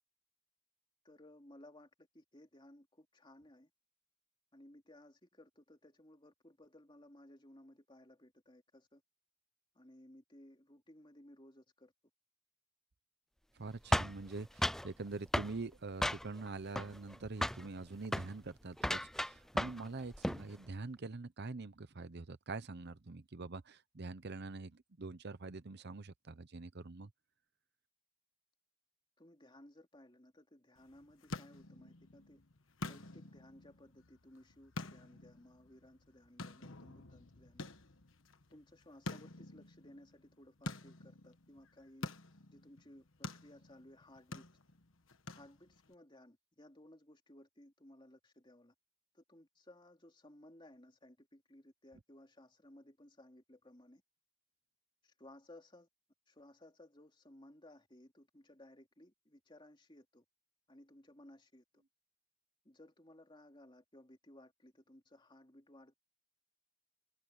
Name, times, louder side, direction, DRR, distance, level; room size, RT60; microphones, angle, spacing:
voice 1, 1.0-3.7 4.5-9.0 9.7-11.9 29.2-32.4 32.8-37.7 38.5-42.1 42.5-44.4 45.3-48.7 49.1-54.0 55.0-55.9 56.3-60.2 60.7-61.8 62.6-66.0, left 1 dB, 20° left, 3.0 m, -59 dB
voice 2, 13.5-27.1, right 3 dB, 50° right, 0.8 m, -45 dB
sound 1, 13.9-14.9 15.3-15.6 16.0-16.5 16.8-17.2 17.4-17.7 18.1-18.3 18.8-19.9 20.1-20.5, equal, ahead, 0.4 m, -34 dB
sound 2, 30.8-45.9, left 2 dB, 65° left, 1.4 m, -49 dB
head